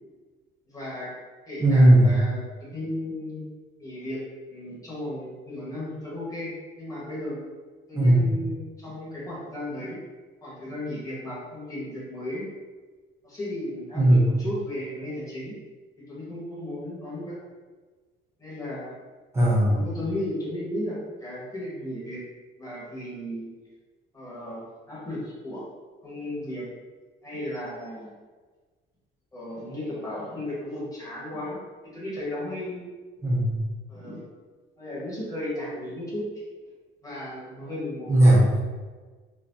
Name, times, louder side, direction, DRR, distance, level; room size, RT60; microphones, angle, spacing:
voice 1, 0.7-1.1 1.5-3.4 3.8-4.2 4.5-7.4 7.9-10.0 10.4-12.5 13.2-15.6 16.0-17.4 18.4-19.0 19.7-22.2 22.5-23.5 24.1-25.7 26.0-26.6 27.2-28.1 29.3-31.6 31.9-32.9 33.9-34.3 34.8-36.4 37.0-38.1, left 1 dB, 15° left, -8 dB, 1.2 m, -35 dB
voice 2, 1.6-2.1 7.9-8.3 13.9-14.2 19.3-19.8 33.2-33.5 38.1-38.6, right 1 dB, 15° right, -6 dB, 0.8 m, -17 dB
4.1 x 2.2 x 2.6 m, 1.4 s
cardioid pair, 170°, 21 cm